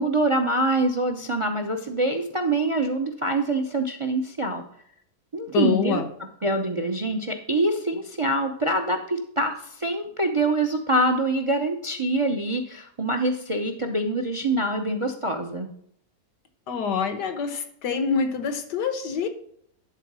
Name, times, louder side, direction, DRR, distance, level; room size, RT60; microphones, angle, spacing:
voice 1, 0.0-4.6 5.3-6.0 6.4-15.7, right 2 dB, 45° right, 6 dB, 0.4 m, -25 dB
voice 2, 5.5-6.1 16.7-19.3, left 6 dB, 85° left, 8 dB, 1.7 m, -26 dB
11.0 x 4.0 x 6.1 m, 0.68 s
omnidirectional pair, 1.7 m